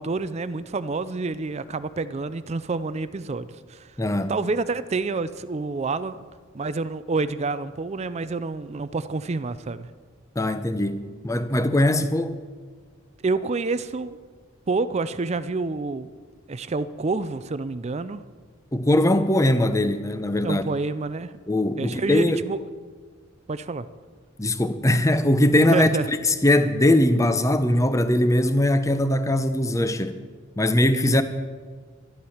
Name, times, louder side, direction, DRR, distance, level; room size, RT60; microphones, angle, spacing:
voice 1, 0.0-3.9 4.3-6.2 6.5-9.9 13.2-14.2 14.7-16.1 16.5-18.2 20.4-21.3 21.8-22.6 23.5-23.9 25.7-26.1, right 3 dB, 30° right, 0.4 m, -28 dB
voice 2, 4.0-4.3 10.4-12.4 18.7-20.6 21.5-22.4 24.4-30.2 30.6-31.2, left 1 dB, 15° left, 0.7 m, -21 dB
12.5 x 11.5 x 7.1 m
head